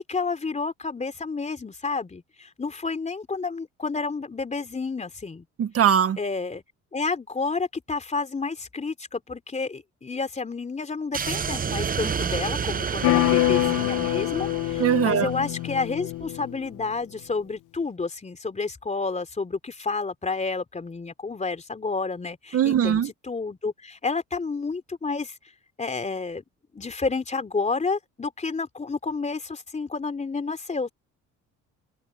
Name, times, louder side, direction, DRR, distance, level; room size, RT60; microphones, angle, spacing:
voice 1, 0.0-5.5 6.2-6.6 6.9-25.3 25.8-26.4 26.7-30.9, left 4 dB, 20° left, 3.7 m, -30 dB
voice 2, 5.6-6.2 14.8-15.3 22.5-23.1, right 9 dB, 50° right, 1.5 m, -21 dB
sound 1, 11.1-15.5, right 6 dB, 30° right, 0.9 m, -30 dB
sound 2, 13.0-16.8, left 18 dB, 75° left, 0.9 m, -25 dB
cardioid pair, 95°, 31 cm